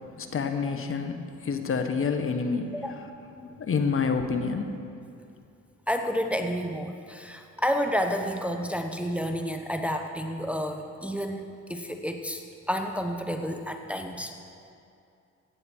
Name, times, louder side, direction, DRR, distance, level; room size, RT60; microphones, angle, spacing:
voice 1, 0.2-2.7 3.4-4.7, left 5 dB, 45° left, 6 dB, 1.1 m, -28 dB
voice 2, 5.9-11.4 11.7-14.3, equal, 5° right, 4 dB, 0.8 m, -30 dB
15.5 x 9.7 x 4.5 m, 2.5 s
cardioid pair, 90°, 30 cm